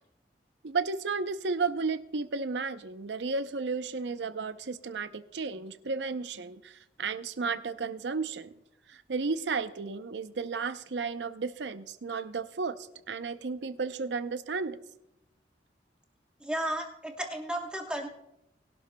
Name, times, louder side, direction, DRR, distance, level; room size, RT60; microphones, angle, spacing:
voice 1, 0.6-8.5 8.9-14.8, right 4 dB, 85° right, 12 dB, 0.6 m, -33 dB
voice 2, 16.4-18.1, right 1 dB, 5° right, 1 dB, 1.1 m, -33 dB
20.0 x 11.5 x 2.2 m, 0.85 s
head